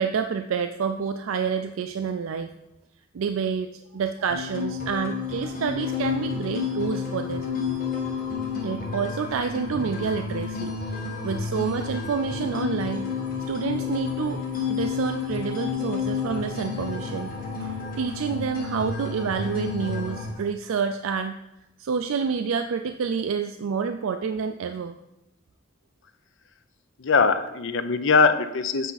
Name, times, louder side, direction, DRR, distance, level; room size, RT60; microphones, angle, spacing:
voice 1, 0.0-2.5 3.1-7.5 8.6-13.1 13.5-17.3 17.6-21.4 21.8-25.0, right 6 dB, 80° right, 8 dB, 0.4 m, -28 dB
sound 1, 4.3-20.3, left 6 dB, 45° left, 1.4 m, -30 dB
voice 2, 27.0-28.9, left 5 dB, 65° left, 9 dB, 0.6 m, -21 dB
8.2 x 5.6 x 4.1 m, 0.88 s
head